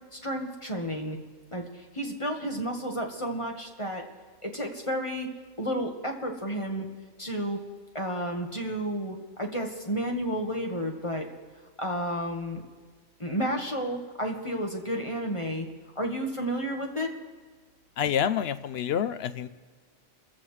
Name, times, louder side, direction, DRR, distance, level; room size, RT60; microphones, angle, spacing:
voice 1, 0.1-1.2 1.5-4.0 4.4-5.3 5.6-6.8 7.2-7.6 7.9-11.3 11.8-12.6 13.2-15.7 15.9-17.1, equal, 25° left, 1 dB, 1.5 m, -31 dB
voice 2, 18.0-19.5, left 8 dB, 60° left, 13 dB, 0.8 m, -27 dB
27.0 x 15.0 x 3.3 m, 1.5 s
omnidirectional pair, 1.4 m